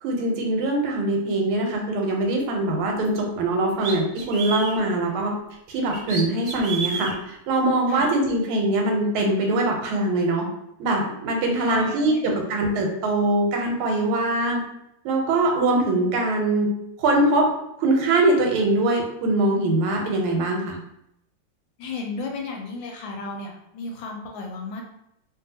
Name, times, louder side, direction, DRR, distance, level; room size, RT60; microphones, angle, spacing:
voice 1, 0.0-5.3 5.7-10.5 10.8-14.6 15.0-16.7 17.0-17.5 17.8-20.8, right 2 dB, 90° right, 1 dB, 1.5 m, -22 dB
sound 1, 3.1-3.2 3.8-4.8 5.9-7.1, right 4 dB, 65° right, 1.0 m, -30 dB
voice 2, 11.6-12.2 21.8-24.8, left 3 dB, 75° left, 1 dB, 1.2 m, -33 dB
3.0 x 2.6 x 2.6 m, 0.78 s
omnidirectional pair, 2.3 m